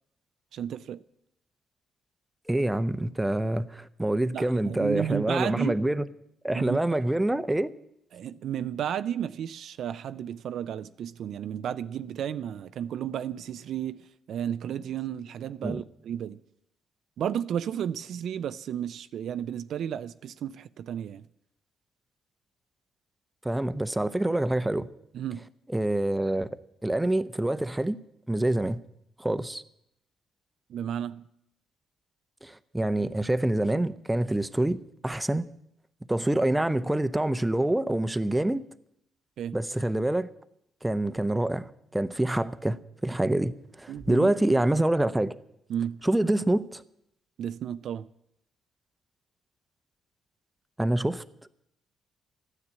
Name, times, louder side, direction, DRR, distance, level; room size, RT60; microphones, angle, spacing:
voice 1, 0.5-1.0 4.3-5.8 6.5-6.9 8.1-16.4 17.2-21.3 25.1-25.5 30.7-31.3 39.4-39.6 43.9-44.3 45.7-46.0 47.4-48.1, right 9 dB, 70° right, 0.4 m, -33 dB
voice 2, 2.5-6.0 6.4-7.7 15.6-15.8 23.4-24.9 25.7-26.5 26.8-28.0 28.3-28.8 29.2-29.6 32.4-35.4 36.1-38.6 39.5-40.3 40.8-43.5 43.8-45.4 46.0-46.8 50.8-51.5, right 1 dB, 10° right, 0.7 m, -26 dB
13.0 x 9.8 x 8.6 m
cardioid pair, 90°, 0 cm